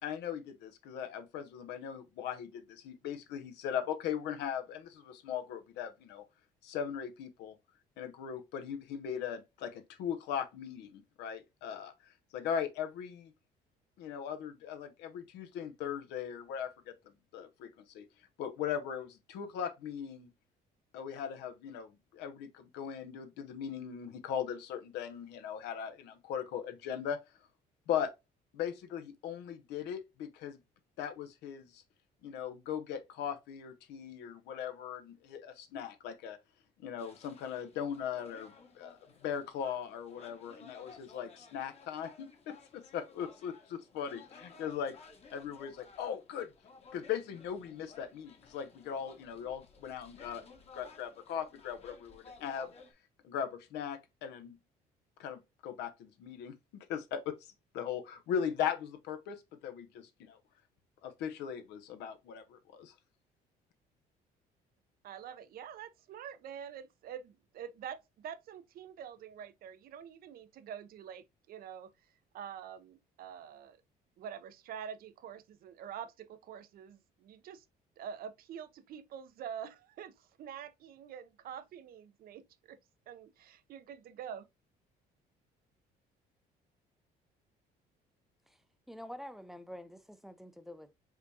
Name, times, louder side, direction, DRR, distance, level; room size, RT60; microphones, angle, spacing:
voice 1, 0.0-6.2 6.6-7.6 8.0-11.9 12.3-13.3 14.0-16.9 17.3-18.0 18.4-20.3 20.9-27.2 27.9-28.1 28.5-30.6 31.0-31.8 32.2-36.4 36.8-39.0 39.2-45.0 45.3-46.5 46.9-50.4 50.7-52.7 53.2-54.6 55.2-57.5 57.7-60.4 61.0-62.9, left 8 dB, 85° left, 0.8 m, -39 dB
sound 1, 37.0-52.9, left 4 dB, 40° left, 1.1 m, -57 dB
voice 2, 65.0-71.9 72.3-73.8 74.2-77.6 78.0-82.8 83.1-84.5, right 8 dB, 60° right, 0.6 m, -46 dB
voice 3, 88.9-90.9, equal, ahead, 0.5 m, -47 dB
4.9 x 3.5 x 2.7 m
cardioid pair, 110°, 17 cm